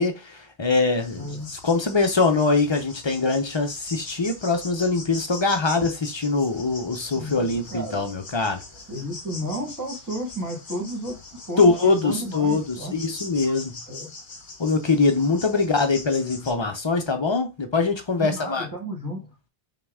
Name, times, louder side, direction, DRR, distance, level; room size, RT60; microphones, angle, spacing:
voice 1, 0.0-8.6 11.6-13.8 14.6-18.7, left 3 dB, 30° left, 0.6 m, -23 dB
sound 1, 1.0-16.5, left 3 dB, 55° left, 1.1 m, -42 dB
voice 2, 1.2-1.5 7.1-8.0 8.9-11.2 11.5-12.9 13.9-14.1 15.5-15.8 18.2-19.3, right 1 dB, 20° right, 1.3 m, -32 dB
5.6 x 2.3 x 3.5 m
omnidirectional pair, 1.0 m